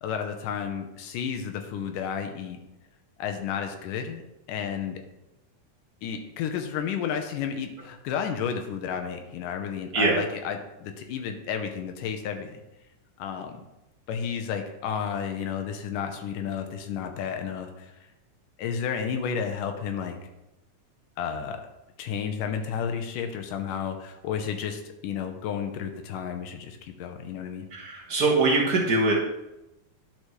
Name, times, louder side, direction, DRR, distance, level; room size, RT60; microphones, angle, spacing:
voice 1, 0.0-2.6 3.2-4.2 4.5-5.0 6.0-12.6 13.2-13.6 14.1-17.9 18.6-20.2 21.2-21.6 22.0-27.7, left 7 dB, 90° left, 5 dB, 2.4 m, -32 dB
voice 2, 27.7-29.1, right 3 dB, 55° right, -3 dB, 1.0 m, -22 dB
11.0 x 5.0 x 3.1 m, 0.94 s
omnidirectional pair, 3.7 m